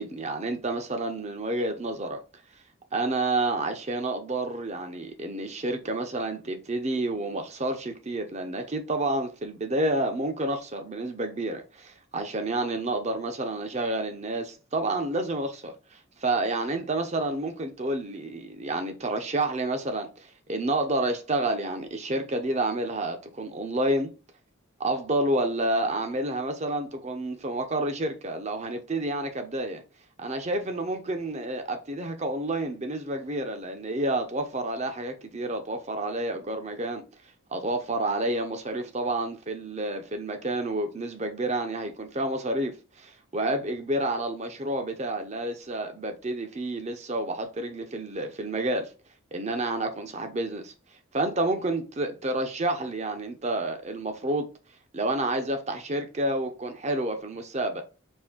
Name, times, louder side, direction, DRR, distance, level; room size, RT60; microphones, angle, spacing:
voice 1, 0.0-2.2 2.9-24.1 24.8-29.8 30.2-37.0 37.5-48.9 49.3-50.7 51.1-54.5 54.9-57.8, right 2 dB, 35° right, 0.7 m, -29 dB
4.4 x 2.7 x 3.6 m
head